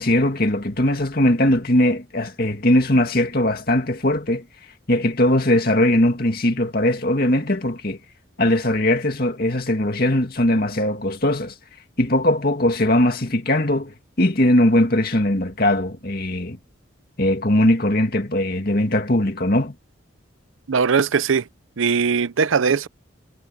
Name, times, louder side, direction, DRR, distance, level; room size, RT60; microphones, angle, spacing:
voice 1, 0.0-4.4 4.9-8.0 8.4-11.5 12.0-16.6 17.2-19.7, left 1 dB, 50° left, 2.4 m, -20 dB
voice 2, 20.7-21.5 21.8-22.9, right 5 dB, 80° right, 0.6 m, -20 dB
head